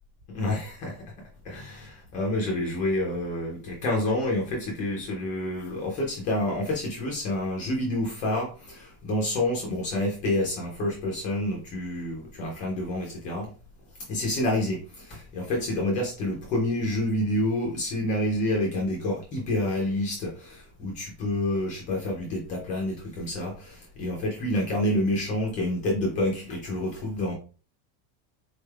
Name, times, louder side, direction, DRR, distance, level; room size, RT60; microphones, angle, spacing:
voice 1, 0.3-1.0 1.4-13.5 14.1-27.3, left 1 dB, 20° left, -1 dB, 0.3 m, -28 dB
4.0 x 3.2 x 2.3 m, 0.37 s
cardioid pair, 175°, 44 cm